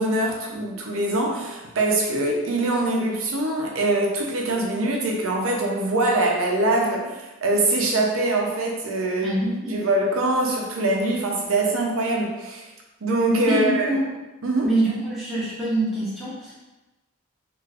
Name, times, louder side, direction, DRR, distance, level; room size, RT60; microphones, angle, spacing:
voice 1, 0.0-9.4 9.7-12.7 13.0-14.0 14.4-14.7, right 2 dB, 80° right, 0 dB, 0.6 m, -23 dB
voice 2, 9.2-9.8 13.4-14.0 14.6-16.5, right 1 dB, ahead, -10 dB, 0.9 m, -25 dB
2.5 x 2.4 x 3.3 m, 1.1 s
head